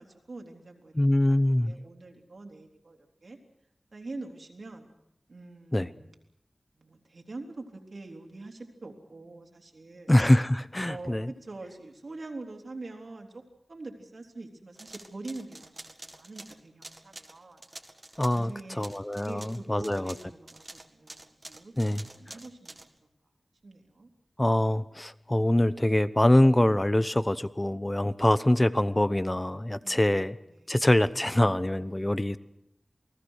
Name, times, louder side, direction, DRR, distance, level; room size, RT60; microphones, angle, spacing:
voice 1, 0.0-0.9 1.3-1.4 1.7-3.4 3.9-4.9 5.3-6.1 6.8-10.1 10.8-13.4 13.7-17.6 18.3-18.9 19.1-22.8 23.6-24.1 29.8-30.2 30.5-30.8 31.9-32.3, right 2 dB, 65° right, 3 dB, 3.5 m, -44 dB
voice 2, 0.9-1.7 5.7-5.9 10.1-11.3 18.2-20.1 21.8-22.0 24.4-30.4 30.7-32.4, left 1 dB, 20° left, 15 dB, 0.9 m, -24 dB
sound 1, 14.8-18.5 18.8-22.9, right 1 dB, 30° right, 1.9 m, -47 dB
28.5 x 19.0 x 6.5 m, 0.78 s
wide cardioid pair, 75°, 0 cm